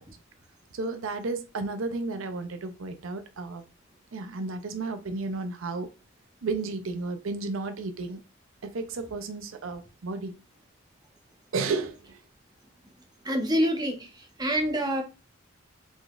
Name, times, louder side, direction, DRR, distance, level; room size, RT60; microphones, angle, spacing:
voice 1, 0.7-3.6 4.1-5.9 6.4-8.2 8.6-10.4 11.5-12.2, right 3 dB, 70° right, 0.6 m, -33 dB
voice 2, 13.2-15.0, equal, 20° right, 0.9 m, -27 dB
5.1 x 3.8 x 2.4 m
head